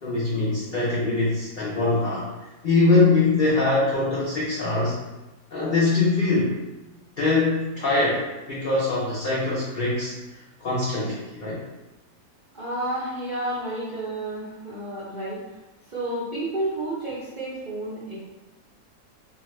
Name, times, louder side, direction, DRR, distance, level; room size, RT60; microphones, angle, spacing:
voice 1, 0.0-5.0 5.5-6.6 7.2-11.6, left 3 dB, 70° left, -7 dB, 0.4 m, -23 dB
voice 2, 12.5-15.6 15.9-18.2, right 1 dB, 55° right, -9 dB, 0.5 m, -31 dB
2.5 x 2.4 x 3.0 m, 1.1 s
omnidirectional pair, 1.6 m